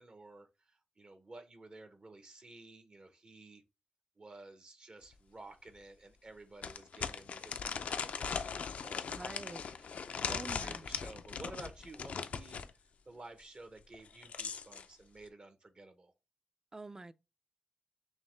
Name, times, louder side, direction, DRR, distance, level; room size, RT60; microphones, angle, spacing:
voice 1, 0.0-3.6 4.2-9.0 9.7-9.8 10.1-12.6 13.0-16.1, right 2 dB, 45° right, 0.8 m, -53 dB
sound 1, 5.1-5.2 5.7-5.8 6.6-12.7 13.9-14.9, left 6 dB, 85° left, 0.4 m, -39 dB
voice 2, 9.1-10.0 10.2-10.8 16.7-17.1, right 2 dB, 25° right, 0.3 m, -47 dB
6.2 x 2.1 x 3.2 m
cardioid pair, 70°, 2 cm